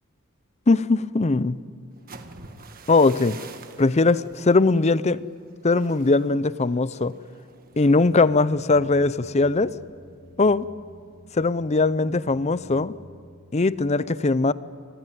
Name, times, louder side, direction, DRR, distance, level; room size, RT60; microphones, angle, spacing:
voice 1, 0.7-1.6 2.9-3.4 3.8-5.2 5.6-7.1 7.8-9.7 10.4-10.7 11.3-13.0 13.5-14.5, left 3 dB, 30° left, 0.6 m, -20 dB
sound 1, 1.9-9.8 10.1-10.5 10.8-11.2, right 4 dB, 40° right, 1.6 m, -48 dB
sound 2, 7.7-13.9, equal, 70° left, 6.1 m, -51 dB
27.0 x 20.0 x 9.4 m
head